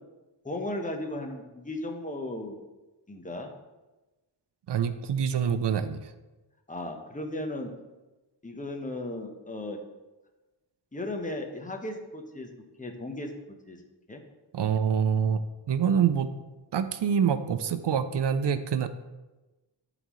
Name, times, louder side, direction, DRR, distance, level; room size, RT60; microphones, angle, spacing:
voice 1, 0.4-2.6 3.1-3.5 6.7-7.7 8.4-9.8 10.9-12.5 12.8-13.3 13.7-13.8 14.1-14.2, left 1 dB, 15° left, 3 dB, 1.0 m, -35 dB
voice 2, 4.7-6.0 14.5-15.4 15.7-16.4 16.7-18.9, right 7 dB, 60° right, 11 dB, 0.6 m, -26 dB
12.0 x 4.0 x 3.1 m, 1.1 s
wide cardioid pair, 85°, 47 cm